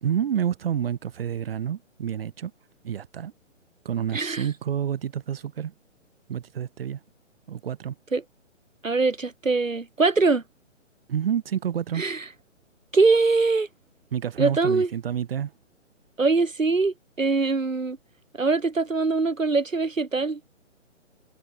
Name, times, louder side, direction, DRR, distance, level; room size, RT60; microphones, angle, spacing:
voice 1, 0.0-2.5 2.8-3.3 3.8-5.7 6.3-7.0 7.5-7.9 11.1-12.1 14.1-15.5, right 9 dB, 50° right, 2.8 m, -28 dB
voice 2, 4.1-4.5 8.1-8.2 8.8-10.4 12.0-12.2 12.9-13.7 14.4-14.9 16.2-18.0 18.4-20.5, right 3 dB, 85° right, 3.7 m, -23 dB
figure-of-eight pair, 140°, 38 cm